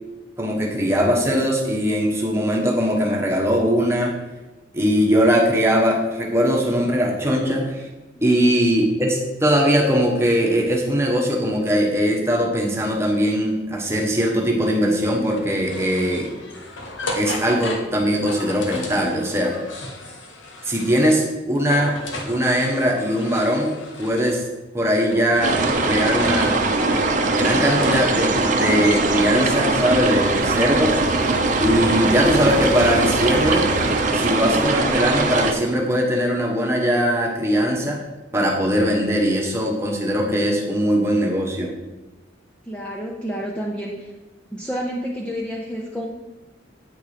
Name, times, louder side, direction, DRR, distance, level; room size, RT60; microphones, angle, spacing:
voice 1, 0.4-4.1 4.7-7.9 8.2-16.3 17.1-19.5 20.6-22.0 22.3-24.4 24.7-26.5 27.3-31.0 31.6-33.7 34.1-38.0 38.3-41.7, equal, 15° right, -1 dB, 1.2 m, -20 dB
sound 1, 15.2-21.3 21.6-24.4 25.0-26.7 27.2-28.9, left 2 dB, 85° left, 1.2 m, -35 dB
sound 2, 25.4-35.5, right 3 dB, 40° right, 0.8 m, -21 dB
sound 3, 28.4-34.1, right 4 dB, 75° right, 0.5 m, -33 dB
voice 2, 42.7-44.1 44.5-46.1, equal, 5° left, -3 dB, 0.6 m, -29 dB
8.7 x 4.7 x 5.0 m, 1.1 s
head